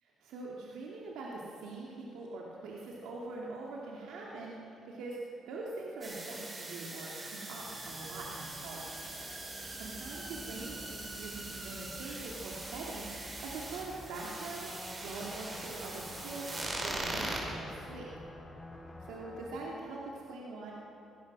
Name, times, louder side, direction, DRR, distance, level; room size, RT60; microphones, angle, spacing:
voice 1, 0.2-5.2 5.4-9.1 9.7-18.1 19.0-20.7, right 3 dB, 90° right, -3 dB, 2.6 m, -43 dB
sound 1, 6.0-17.4, right 2 dB, 30° right, 5.1 m, -42 dB
sound 2, 7.6-14.1, equal, 5° left, 3.6 m, -51 dB
sound 3, 14.4-19.4, left 2 dB, 25° left, 5.7 m, -49 dB
24.5 x 17.5 x 6.2 m, 2.9 s
cardioid pair, 90°, 0 cm